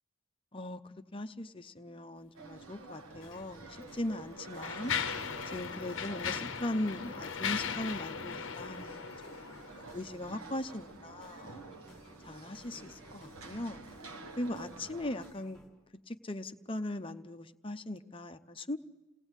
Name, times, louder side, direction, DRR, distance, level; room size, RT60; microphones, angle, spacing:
voice 1, 0.5-4.9 5.5-11.7 12.2-13.8 14.4-15.6 16.1-18.8, left 1 dB, 25° left, 7 dB, 0.7 m, -39 dB
sound 1, 2.3-15.3, right 3 dB, 85° right, 1.5 m, -49 dB
sound 2, 3.1-15.7, left 1 dB, 5° left, 4.3 m, -60 dB
Mechanisms, 3.2-3.4 4.1-9.9, left 7 dB, 65° left, 0.7 m, -38 dB
29.5 x 18.0 x 8.1 m, 1.2 s
head